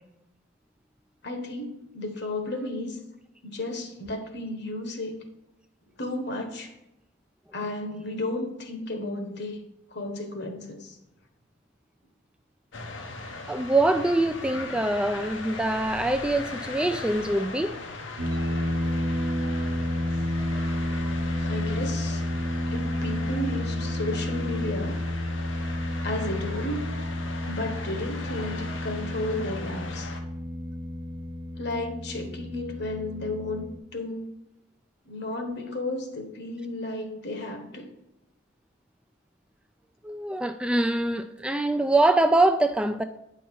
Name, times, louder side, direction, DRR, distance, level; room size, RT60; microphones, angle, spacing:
voice 1, 1.2-3.0 3.4-5.2 6.0-6.7 7.5-9.6 9.9-11.0 21.4-22.3 22.7-25.0 26.0-26.9 27.4-30.1 31.6-34.3 35.0-37.9, left 2 dB, 60° left, 1.3 m, -33 dB
sound 1, 12.7-30.2, left 3 dB, 75° left, 1.0 m, -39 dB
voice 2, 13.5-17.7 40.0-43.0, right 2 dB, 5° right, 0.3 m, -24 dB
sound 2, 18.2-33.8, left 1 dB, 70° right, 1.1 m, -30 dB
9.1 x 5.7 x 4.6 m
head